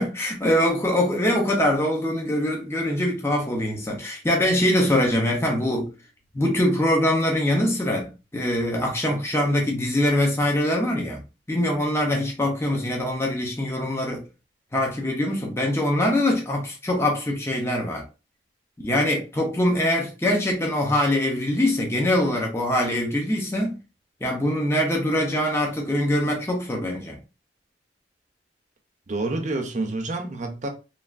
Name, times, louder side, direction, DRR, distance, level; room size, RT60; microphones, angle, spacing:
voice 1, 0.0-5.9 6.3-11.2 11.5-14.2 14.7-18.0 18.8-23.8 24.2-27.2, left 1 dB, 15° left, 0.6 m, -23 dB
voice 2, 29.1-30.7, right 2 dB, 40° right, 0.6 m, -28 dB
3.2 x 2.4 x 2.4 m
head